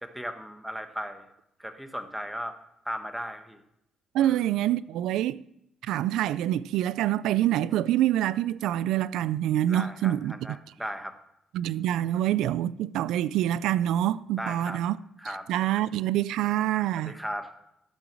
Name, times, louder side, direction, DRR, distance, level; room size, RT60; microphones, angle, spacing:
voice 1, 0.0-1.3 1.6-2.6 2.8-3.6 4.2-4.4 9.7-11.1 14.4-14.8 15.2-15.5 17.0-17.5, equal, 5° right, 1.3 m, -36 dB
voice 2, 4.1-5.4 5.9-10.4 11.5-15.0 15.5-17.2, right 12 dB, 90° right, 0.4 m, -26 dB
12.0 x 6.2 x 7.5 m
cardioid pair, 90°, 0 cm